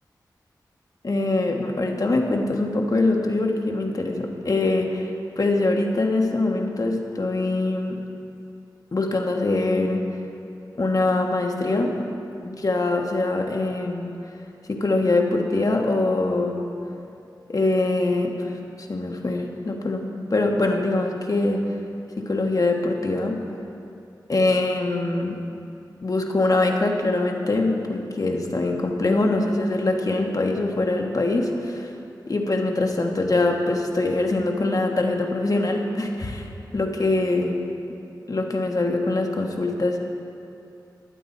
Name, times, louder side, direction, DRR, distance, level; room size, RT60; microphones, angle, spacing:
voice 1, 1.0-5.1 5.4-8.0 8.9-10.0 10.8-11.9 12.4-14.1 14.7-16.7 17.5-18.5 18.8-21.6 22.2-23.5 24.3-25.4 26.0-31.9 32.3-37.7 38.3-40.0, left 2 dB, 50° left, 2 dB, 1.5 m, -23 dB
15.5 x 11.5 x 4.3 m, 2.6 s
cardioid pair, 55°, 8 cm